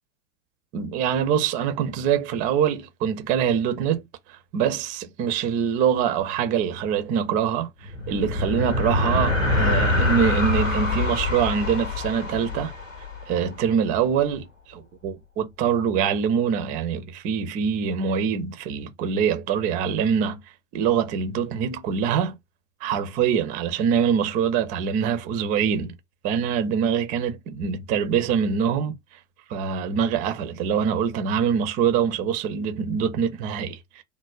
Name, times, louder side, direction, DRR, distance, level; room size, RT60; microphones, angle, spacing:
voice 1, 0.7-4.0 4.3-12.7 13.3-20.4 20.7-22.4 22.8-26.0 26.2-29.2 29.5-34.0, right 7 dB, 20° right, 0.4 m, -24 dB
sound 1, 7.8-13.5, left 2 dB, 85° left, 0.9 m, -25 dB
3.2 x 2.0 x 2.4 m
figure-of-eight pair, 90°, 38 cm